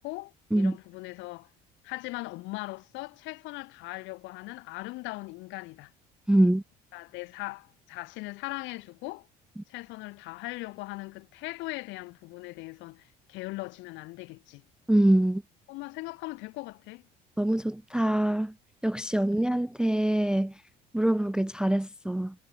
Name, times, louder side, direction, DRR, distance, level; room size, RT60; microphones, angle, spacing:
voice 1, 0.0-1.5 1.8-5.9 6.9-9.3 9.7-14.6 15.7-17.0, left 22 dB, 80° left, 2.7 m, -39 dB
voice 2, 6.3-6.6 14.9-15.4 17.4-18.5 18.8-20.5 20.9-22.3, right 1 dB, 5° right, 0.3 m, -24 dB
supercardioid pair, 80°, 19 cm